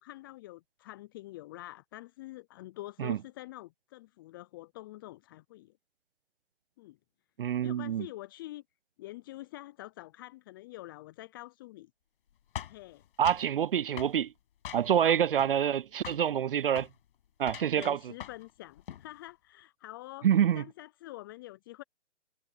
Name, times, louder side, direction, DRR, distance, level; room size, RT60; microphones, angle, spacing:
voice 1, 0.0-5.7 6.8-7.0 7.6-8.6 9.0-11.9 12.7-13.0 15.0-15.2 17.7-20.3 20.5-21.8, left 17 dB, 20° left, 0.6 m, -46 dB
voice 2, 7.4-8.1 13.2-14.3 14.7-16.9 17.4-18.0 20.2-20.6, right 9 dB, 50° right, 0.6 m, -26 dB
sound 1, 12.6-13.5 14.0-14.2 14.6-15.1 15.4-16.3 16.7-16.9 17.4-18.5 18.8-19.1, left 10 dB, 50° left, 6.2 m, -43 dB
figure-of-eight pair, 140°, 36 cm